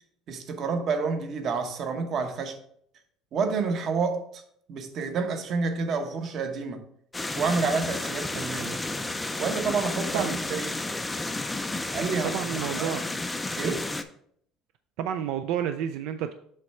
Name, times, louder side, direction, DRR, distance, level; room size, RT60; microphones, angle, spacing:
voice 1, 0.3-2.6 3.3-4.4 4.7-6.8 7.4-8.8 9.4-10.7 11.9-12.3 12.8-13.0 13.6-13.9, right 4 dB, 35° right, 7 dB, 0.8 m, -29 dB
HC Bridge Spaced Omni's, 7.1-14.0, left 2 dB, 10° left, 0.4 m, -32 dB
voice 2, 12.2-13.0 15.0-16.3, right 9 dB, 65° right, 9 dB, 0.3 m, -30 dB
7.6 x 3.2 x 5.6 m, 0.67 s
cardioid pair, 180°, 0 cm